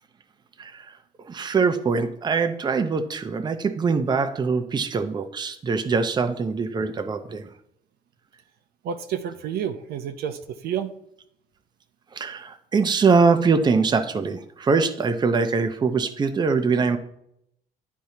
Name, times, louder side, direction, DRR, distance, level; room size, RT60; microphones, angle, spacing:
voice 1, 1.3-7.4 12.1-17.0, right 4 dB, 25° right, 8 dB, 0.6 m, -23 dB
voice 2, 8.8-10.9, right 8 dB, 70° right, 8 dB, 0.6 m, -30 dB
10.5 x 4.6 x 2.8 m, 0.74 s
cardioid pair, 110°, 17 cm